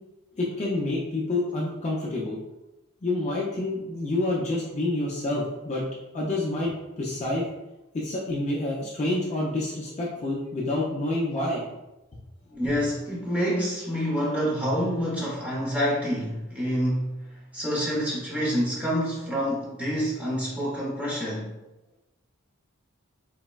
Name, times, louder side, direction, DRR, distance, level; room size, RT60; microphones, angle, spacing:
voice 1, 0.4-2.4 3.0-6.7 7.0-7.4 7.9-11.6 12.8-12.9, left 2 dB, 30° left, -4 dB, 0.4 m, -28 dB
voice 2, 12.5-17.2 17.5-21.5, equal, 5° right, -6 dB, 0.7 m, -27 dB
4.0 x 2.1 x 2.2 m, 0.97 s
head